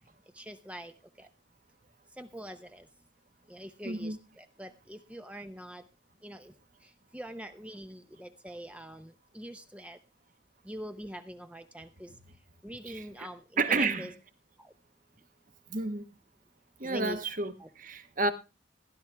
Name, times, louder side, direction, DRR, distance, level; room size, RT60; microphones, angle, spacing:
voice 1, 0.4-0.9 1.2-1.3 2.2-2.9 3.5-5.8 6.2-6.5 7.1-10.0 10.7-12.1 12.6-14.1 14.6-14.7 16.8-17.2 17.6-17.7, equal, 5° right, 0.7 m, -43 dB
voice 2, 3.8-4.2 12.9-13.3 13.6-14.2 15.7-16.0 16.8-18.3, right 3 dB, 40° right, 1.3 m, -31 dB
15.5 x 11.5 x 3.4 m
head